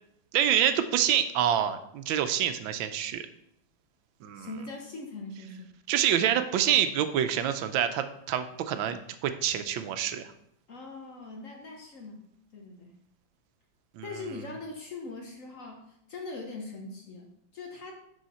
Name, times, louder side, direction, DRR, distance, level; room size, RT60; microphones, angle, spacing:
voice 1, 0.3-3.2 4.2-4.5 5.9-10.3 14.0-14.1, right 10 dB, 80° right, 9 dB, 1.3 m, -27 dB
voice 2, 4.3-5.7 10.7-12.3 12.5-12.9 14.0-18.0, left 3 dB, 55° left, 1 dB, 1.0 m, -41 dB
6.4 x 5.5 x 4.2 m, 0.75 s
omnidirectional pair, 2.1 m